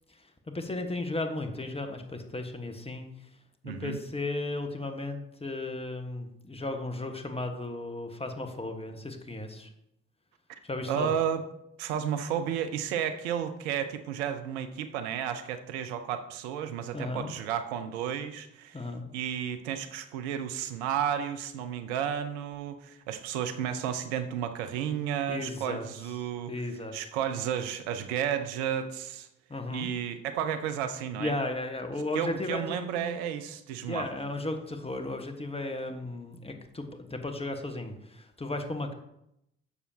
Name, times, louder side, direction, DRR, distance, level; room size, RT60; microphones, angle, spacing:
voice 1, 0.1-3.3 3.6-9.7 10.6-11.1 16.9-17.3 18.7-19.1 25.3-25.8 26.5-26.9 29.5-29.9 31.2-33.2 33.9-38.9, left 2 dB, 20° left, 5 dB, 1.4 m, -35 dB
voice 2, 3.6-4.0 10.5-10.6 10.9-11.4 11.8-18.8 19.1-26.5 26.9-29.3 29.7-31.4 32.1-34.1, right 9 dB, 75° right, 9 dB, 0.7 m, -32 dB
9.7 x 7.0 x 2.8 m, 0.80 s
figure-of-eight pair, 45°, 32 cm